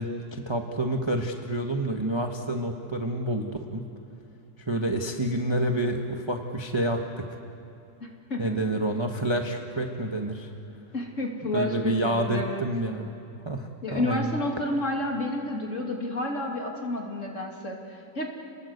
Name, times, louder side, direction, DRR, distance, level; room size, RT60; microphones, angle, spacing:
voice 1, 0.0-3.8 4.7-7.3 8.4-10.5 11.5-13.1 13.4-14.4, right 1 dB, 15° right, 3 dB, 1.1 m, -28 dB
voice 2, 8.0-8.6 10.9-12.6 13.8-18.3, left 1 dB, 40° left, 1 dB, 3.0 m, -30 dB
30.0 x 20.0 x 8.1 m, 2.6 s
omnidirectional pair, 2.0 m